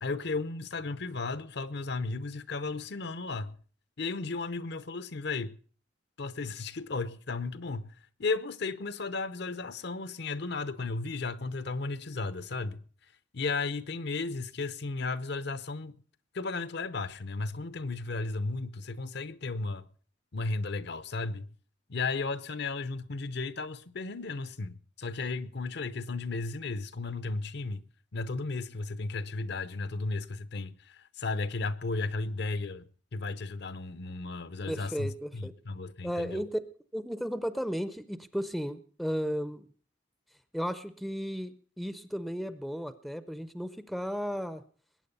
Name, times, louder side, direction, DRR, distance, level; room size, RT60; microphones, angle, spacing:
voice 1, 0.0-3.6 4.0-5.6 6.2-7.9 8.2-12.8 13.3-16.0 16.3-19.9 20.3-21.5 21.9-27.8 28.1-32.8 33.1-36.4, left 3 dB, 60° left, 0.8 m, -34 dB
voice 2, 34.7-35.5 36.0-36.6 36.9-39.6 40.5-44.6, equal, ahead, 0.6 m, -34 dB
21.0 x 9.2 x 5.4 m
head